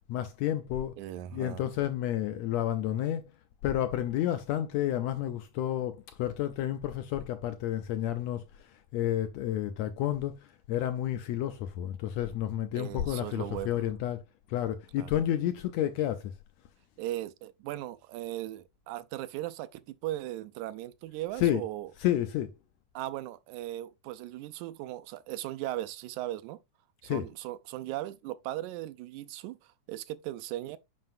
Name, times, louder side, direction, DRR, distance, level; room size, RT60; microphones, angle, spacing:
voice 1, 0.1-1.0 1.3-3.3 3.6-14.2 14.5-16.3 21.4-21.6 22.0-22.5 27.0-27.3, left 12 dB, 80° left, 1.5 m, -30 dB
voice 2, 1.0-1.6 12.7-13.7 15.0-15.1 17.0-21.9 23.0-26.6 27.0-30.8, right 14 dB, 80° right, 1.8 m, -38 dB
7.5 x 5.7 x 2.5 m
omnidirectional pair, 3.7 m